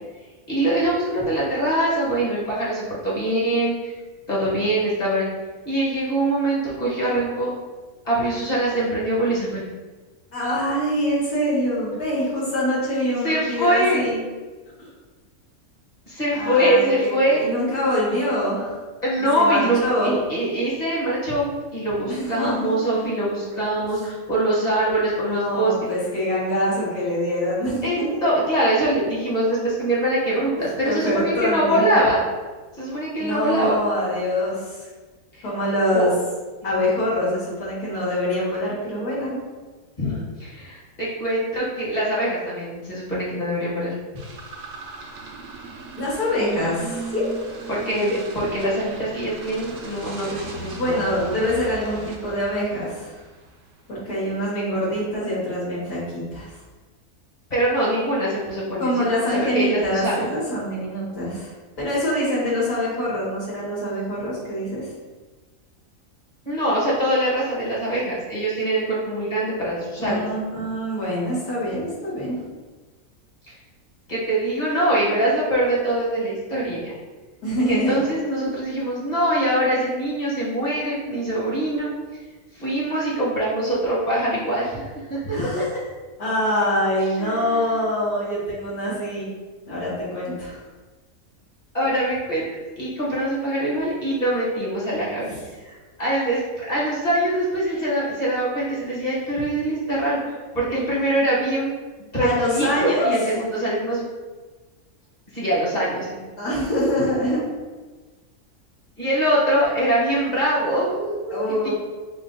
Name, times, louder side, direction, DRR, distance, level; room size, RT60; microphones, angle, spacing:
voice 1, 0.5-3.9 4.3-5.3 5.6-7.5 8.0-9.6 13.2-14.1 16.1-17.4 19.0-25.7 27.8-32.2 32.7-33.8 35.9-36.1 40.0-43.9 47.7-51.0 55.2-55.3 57.5-59.1 59.3-60.3 66.4-70.2 73.5-73.6 74.1-76.9 77.7-81.9 82.5-85.6 87.2-87.8 91.7-92.4 92.8-95.4 95.6-101.7 102.1-104.0 105.3-106.3 109.0-111.4, right 1 dB, 30° left, -7 dB, 1.2 m, -23 dB
voice 2, 10.3-14.2 14.8-14.9 16.3-18.8 19.3-20.2 22.1-23.1 25.3-28.4 30.5-32.0 33.2-34.9 35.4-36.1 36.6-39.4 46.0-47.3 50.8-53.2 53.9-56.5 58.8-61.5 61.8-64.9 70.0-72.4 77.4-78.0 85.3-85.7 86.2-89.3 89.7-90.6 102.2-103.1 106.4-107.4 111.3-111.7, left 1 dB, 90° left, -8 dB, 2.2 m, -25 dB
sound 1, 44.2-53.7, right 3 dB, 65° right, 0.9 m, -38 dB
6.2 x 2.4 x 2.6 m, 1.3 s
omnidirectional pair, 1.5 m